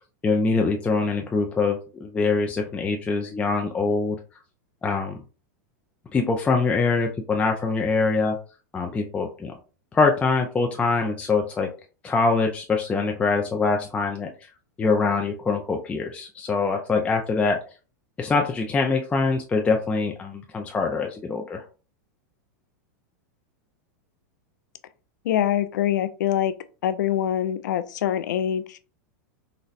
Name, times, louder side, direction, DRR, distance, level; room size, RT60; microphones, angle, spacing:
voice 1, 0.2-4.2 4.8-5.2 6.1-8.4 8.7-9.5 9.9-11.7 12.0-14.3 14.8-17.6 18.2-21.6, left 4 dB, 10° left, 0.3 m, -24 dB
voice 2, 25.2-26.5 26.8-28.8, left 10 dB, 85° left, 0.4 m, -24 dB
4.0 x 2.0 x 2.4 m
supercardioid pair, 135°, 10 cm